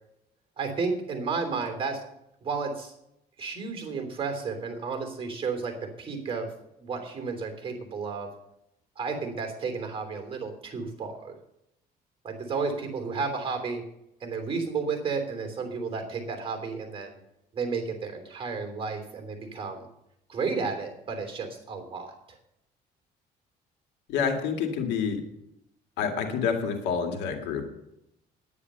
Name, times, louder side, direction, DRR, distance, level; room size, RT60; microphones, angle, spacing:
voice 1, 0.6-2.0 2.4-2.9 3.4-6.5 6.8-8.3 9.0-11.3 12.2-13.8 14.2-17.2 17.5-19.9 20.3-22.4, right 4 dB, 30° right, 5 dB, 3.2 m, -32 dB
voice 2, 24.1-25.2 26.0-27.6, left 6 dB, 90° left, 5 dB, 2.1 m, -28 dB
9.9 x 9.7 x 6.7 m, 0.82 s
cardioid pair, 110°, 17 cm